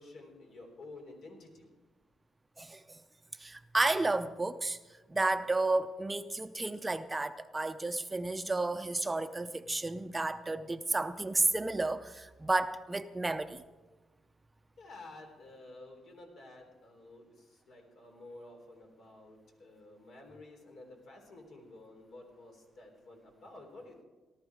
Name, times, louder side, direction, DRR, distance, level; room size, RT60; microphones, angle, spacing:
voice 1, 0.0-1.7 14.8-24.0, left 2 dB, 65° left, 3.7 m, -52 dB
voice 2, 3.4-4.8 5.1-13.6, right 2 dB, 20° right, 0.6 m, -32 dB
18.0 x 12.5 x 4.8 m
cardioid pair, 90°, 0 cm